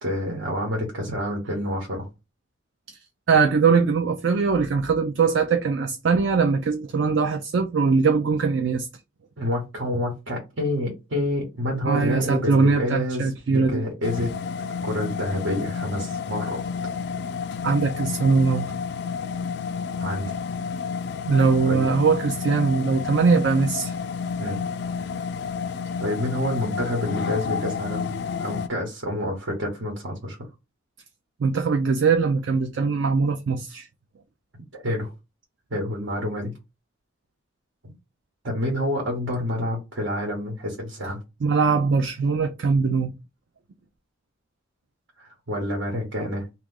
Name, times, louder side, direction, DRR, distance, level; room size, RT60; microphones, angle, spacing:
voice 1, 0.0-2.1 9.4-14.3 14.8-16.6 20.0-20.4 21.7-21.9 24.4-24.6 26.0-30.4 34.7-35.1 35.7-36.5 37.8-37.9 38.4-41.2 45.2-46.5, left 1 dB, 85° right, 1.2 m, -28 dB
voice 2, 3.3-8.9 11.9-13.9 17.6-18.7 21.3-23.9 31.4-33.9 41.4-43.1, right 4 dB, 65° right, 0.4 m, -21 dB
sound 1, 14.0-28.7, left 6 dB, 60° left, 0.3 m, -30 dB
2.9 x 2.4 x 3.6 m
head